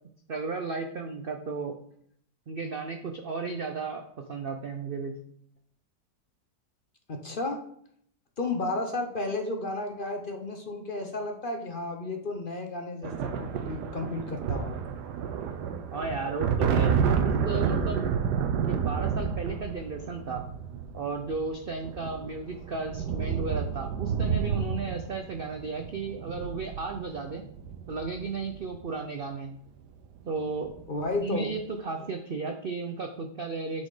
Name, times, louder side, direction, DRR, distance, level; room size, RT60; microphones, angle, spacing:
voice 1, 0.3-1.7 2.5-5.1 15.9-18.1 18.6-20.4 20.9-27.4 27.9-29.6 30.3-30.7 31.2-33.9, right 4 dB, 90° right, 5 dB, 0.4 m, -34 dB
voice 2, 7.1-7.6 8.4-14.8 30.9-31.5 32.0-32.1, left 2 dB, 40° left, 4 dB, 0.8 m, -33 dB
sound 1, 13.0-28.8 29.9-30.2 30.5-31.2, right 6 dB, 70° right, 1.3 m, -30 dB
8.5 x 4.2 x 4.9 m, 0.66 s
omnidirectional pair, 1.9 m